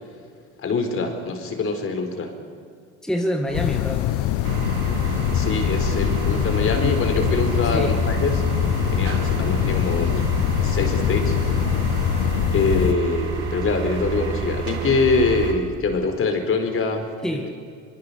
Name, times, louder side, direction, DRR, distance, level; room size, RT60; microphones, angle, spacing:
voice 1, 0.6-2.3 5.1-10.2 10.6-11.5 12.5-17.1, left 4 dB, 40° left, 6 dB, 4.2 m, -24 dB
voice 2, 3.0-4.1 7.7-7.9 17.2-17.5, equal, ahead, 2 dB, 2.1 m, -26 dB
sound 1, 3.5-12.9, left 17 dB, 65° left, 0.7 m, -23 dB
sound 2, 3.5-12.3, right 2 dB, 30° right, 6.1 m, -41 dB
sound 3, 4.4-15.5, right 5 dB, 85° right, 2.7 m, -28 dB
23.5 x 23.0 x 6.9 m, 2.2 s
supercardioid pair, 90°, 33 cm